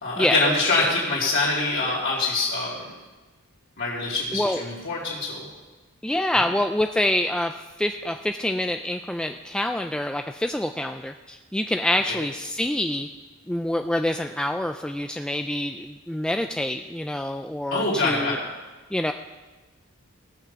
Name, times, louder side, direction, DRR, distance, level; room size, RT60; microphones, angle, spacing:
voice 1, 0.0-2.8 3.8-5.4 12.1-12.2 17.7-18.4, left 3 dB, 55° left, -7 dB, 2.7 m, -24 dB
voice 2, 4.3-4.6 6.0-13.1 13.5-18.4 18.9-19.1, left 1 dB, 5° left, 5 dB, 0.3 m, -26 dB
17.5 x 6.0 x 6.9 m, 1.2 s
head